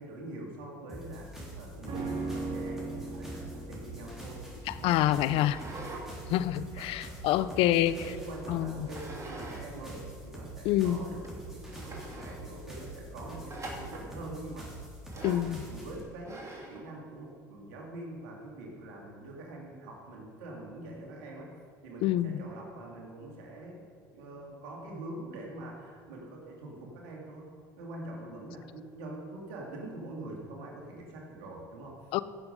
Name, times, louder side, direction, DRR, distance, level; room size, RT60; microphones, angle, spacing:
voice 1, 0.0-4.5 4.8-5.4 6.7-7.0 7.3-14.8 15.1-21.5 21.8-23.8 24.1-32.1, right 2 dB, 75° right, -1 dB, 2.5 m, -44 dB
sound 1, 0.9-16.0, right 1 dB, 5° right, 3.6 m, -45 dB
sound 2, 1.9-11.3 11.6-11.7, right 3 dB, 50° right, 2.7 m, -41 dB
voice 2, 4.8-5.6 6.3-8.0 8.5-8.9 10.6-11.0 15.2-15.6 22.0-22.4 32.1-32.2, left 13 dB, 60° left, 15 dB, 0.5 m, -26 dB
sound 3, 5.4-6.1 6.5-7.8 8.9-9.7 9.9-10.0 10.7-10.8 11.2-11.3 11.7-12.4 13.5-14.1 15.1-15.5 16.2-16.8, right 2 dB, 30° right, 2.7 m, -44 dB
16.0 x 7.0 x 5.3 m, 2.1 s
hypercardioid pair, 70°, 10 cm